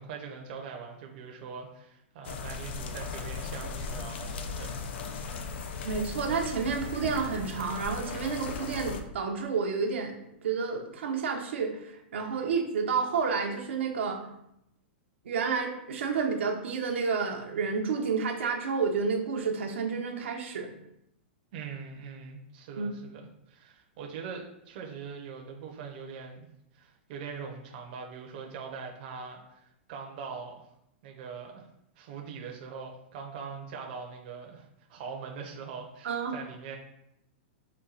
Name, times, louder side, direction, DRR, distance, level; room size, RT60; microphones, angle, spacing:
voice 1, 0.0-4.9 21.5-23.2 23.5-26.5 26.7-30.7 31.0-31.7 32.0-36.8, right 5 dB, 50° right, 1 dB, 0.7 m, -42 dB
sound 1, 2.2-9.0, left 4 dB, 65° left, 0.5 m, -37 dB
voice 2, 5.8-14.3 15.2-20.7 22.8-22.9 36.0-36.4, right 5 dB, 85° right, 2 dB, 0.7 m, -30 dB
4.2 x 2.2 x 4.0 m, 0.79 s
hypercardioid pair, 150°, 6 cm